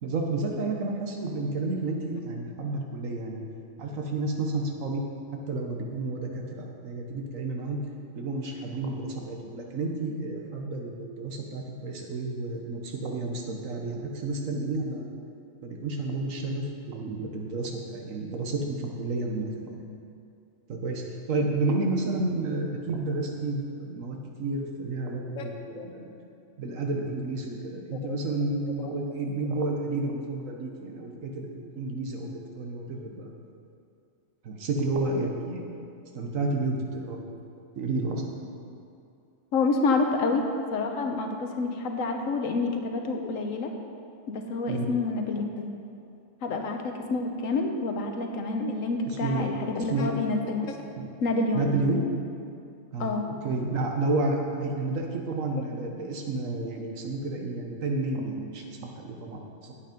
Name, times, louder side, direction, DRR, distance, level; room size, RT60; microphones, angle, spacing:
voice 1, 0.0-3.4 3.8-5.0 5.5-7.8 8.2-15.1 15.6-19.8 20.7-26.1 26.6-33.3 34.4-35.6 36.1-37.2 37.8-38.2 44.7-44.9 49.1-49.5 49.8-50.1 51.0-51.1 51.5-52.0 52.9-53.1 53.4-59.4, right 2 dB, 80° right, 1 dB, 1.5 m, -31 dB
voice 2, 39.5-40.5 40.7-43.7 44.3-45.7 46.4-50.8 51.2-51.7 53.0-53.3, left 3 dB, 80° left, 4 dB, 1.3 m, -28 dB
8.5 x 8.4 x 5.2 m, 2.5 s
omnidirectional pair, 1.3 m